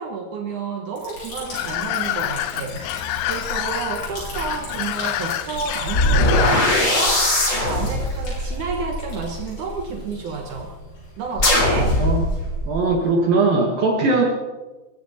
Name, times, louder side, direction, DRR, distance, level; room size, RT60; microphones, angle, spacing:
voice 1, 0.0-10.7 11.2-12.0, right 5 dB, 80° right, 2 dB, 1.7 m, -31 dB
Liquid, 1.0-13.4, left 2 dB, 65° left, 9.2 m, -37 dB
sound 1, 1.5-7.1, left 14 dB, 85° left, 3.0 m, -27 dB
sound 2, 4.2-4.3 5.9-10.0 11.4-12.8, left 1 dB, 20° left, 2.7 m, -21 dB
voice 2, 12.7-14.2, right 3 dB, 60° right, 1 dB, 3.0 m, -19 dB
21.0 x 15.0 x 4.2 m, 1.2 s
omnidirectional pair, 5.5 m